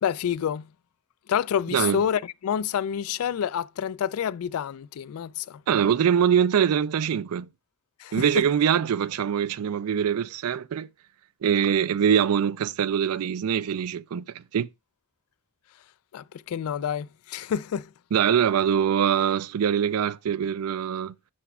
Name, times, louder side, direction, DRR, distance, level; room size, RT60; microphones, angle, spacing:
voice 1, 0.0-0.7 1.3-5.6 8.0-8.4 16.1-17.9, left 8 dB, 75° left, 0.3 m, -28 dB
voice 2, 1.7-2.0 5.7-7.5 8.1-10.9 11.4-14.7 18.1-21.1, right 8 dB, 80° right, 0.4 m, -23 dB
9.7 x 5.9 x 2.3 m
head